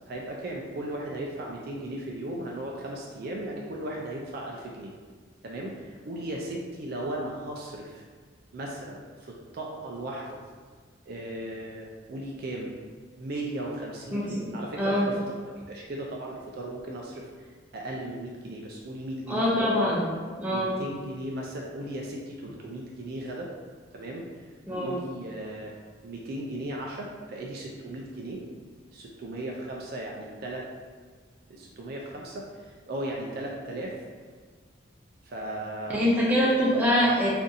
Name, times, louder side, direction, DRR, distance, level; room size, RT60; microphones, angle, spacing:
voice 1, 0.1-4.9 5.4-8.0 8.5-10.4 11.1-12.7 13.2-15.2 15.6-17.3 17.7-19.8 20.5-23.5 23.9-24.2 24.7-25.7 26.0-28.4 28.9-30.7 31.5-34.0 35.3-36.0, right 1 dB, 50° right, -2 dB, 0.3 m, -36 dB
voice 2, 14.1-15.1 19.3-20.1 20.4-20.8 24.7-24.9 35.9-37.3, equal, 10° right, -6 dB, 0.6 m, -24 dB
2.6 x 2.5 x 3.9 m, 1.5 s
head